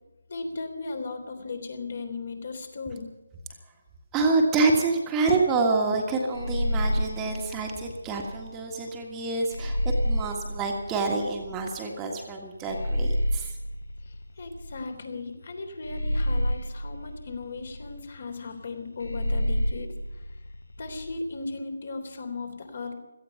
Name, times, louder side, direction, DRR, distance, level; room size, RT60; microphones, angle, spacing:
voice 1, 0.3-3.0 14.4-19.9 20.8-22.9, left 3 dB, 50° left, 6 dB, 3.4 m, -36 dB
voice 2, 4.1-9.8 10.0-13.6, right 3 dB, 15° right, 1 dB, 1.7 m, -27 dB
sound 1, 6.3-8.5 9.5-11.7 12.7-15.0 15.8-18.0 19.0-21.2, equal, 70° left, 0.9 m, -29 dB
17.5 x 14.5 x 5.7 m, 1.1 s
figure-of-eight pair, 150°, 0 cm